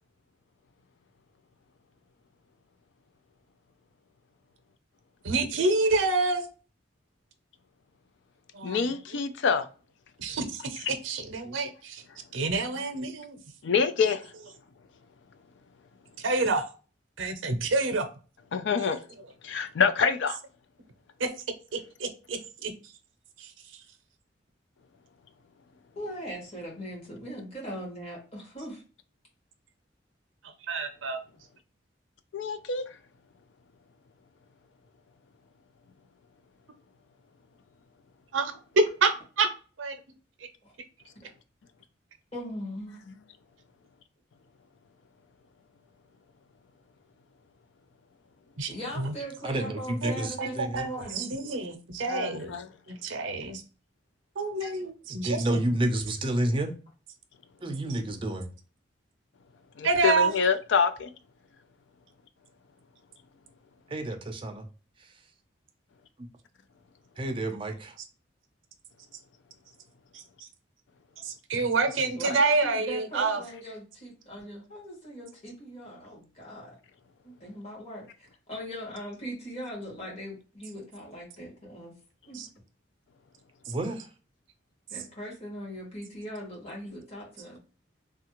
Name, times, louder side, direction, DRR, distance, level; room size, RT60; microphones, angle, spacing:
voice 1, 5.2-6.5 8.5-8.9 10.2-12.0 12.3-13.4 16.2-16.7 17.2-18.1 21.2-21.3 22.0-22.7 23.4-23.5 30.7-31.2 38.3-39.5 39.8-40.0 48.6-49.1 50.0-52.6 52.9-53.6 54.4-55.6 57.9-58.0 59.8-60.3 70.1-70.2 71.2-73.4 82.3-82.5 83.7-83.8, right 3 dB, 85° right, 0.6 m, -28 dB
voice 2, 8.6-9.7 13.6-14.2 18.5-19.0 19.4-20.4 32.3-32.8 52.1-52.6 54.6-54.7 59.8-61.1, left 6 dB, 65° left, 0.4 m, -26 dB
voice 3, 26.0-28.8 40.6-40.7 42.3-43.0 48.7-51.6 72.1-76.8 77.2-81.9 82.3-82.4 84.9-87.6, equal, 35° left, 1.7 m, -40 dB
voice 4, 49.4-50.9 55.1-56.7 57.6-58.5 63.9-64.6 65.0-65.1 67.2-68.0 83.7-84.1, right 1 dB, 25° right, 0.5 m, -30 dB
3.3 x 2.3 x 2.9 m
head